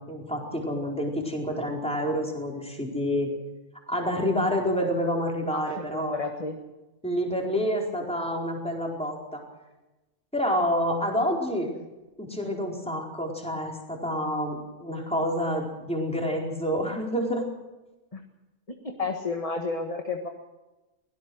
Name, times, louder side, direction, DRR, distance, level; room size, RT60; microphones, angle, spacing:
voice 1, 0.1-3.3 3.9-6.2 7.0-9.4 10.3-11.7 12.2-17.5, equal, 5° left, -1 dB, 4.5 m, -28 dB
voice 2, 5.4-6.6 18.1-18.2 18.8-20.3, left 3 dB, 30° left, 4 dB, 1.6 m, -32 dB
23.5 x 17.5 x 6.3 m, 1.1 s
omnidirectional pair, 1.2 m